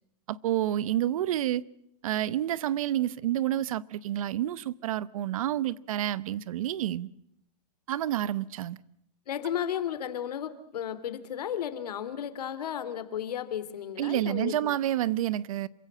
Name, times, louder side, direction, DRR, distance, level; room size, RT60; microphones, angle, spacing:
voice 1, 0.3-1.6 2.0-7.1 7.9-8.8 14.0-15.7, right 12 dB, 55° right, 0.9 m, -29 dB
voice 2, 9.3-14.7, left 9 dB, 70° left, 2.9 m, -34 dB
27.0 x 16.0 x 8.6 m
hypercardioid pair, 155°, 21 cm